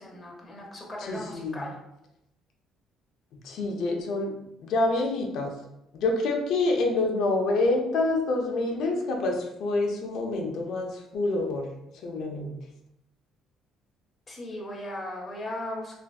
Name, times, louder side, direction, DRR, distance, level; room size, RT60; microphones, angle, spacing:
voice 1, 0.0-1.8 14.3-16.0, left 1 dB, 15° left, -2 dB, 0.8 m, -37 dB
voice 2, 1.0-1.7 3.4-4.3 4.6-5.6 6.0-12.6, left 2 dB, 65° left, 2 dB, 0.6 m, -27 dB
3.4 x 2.5 x 2.3 m, 0.86 s
cardioid pair, 135°, 0 cm